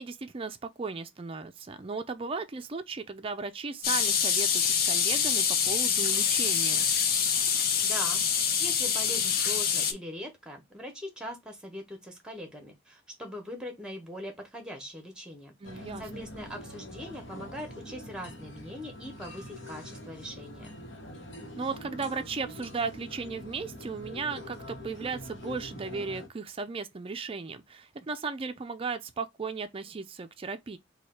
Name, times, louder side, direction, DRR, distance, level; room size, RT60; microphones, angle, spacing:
voice 1, 0.0-6.9 15.6-16.2 21.6-30.8, right 4 dB, 30° right, 0.4 m, -36 dB
sound 1, 3.8-9.9, left 7 dB, 50° left, 0.6 m, -26 dB
voice 2, 7.8-20.7, equal, 5° right, 1.0 m, -41 dB
sound 2, 15.6-26.3, left 1 dB, 65° left, 1.1 m, -44 dB
3.1 x 2.3 x 4.3 m
head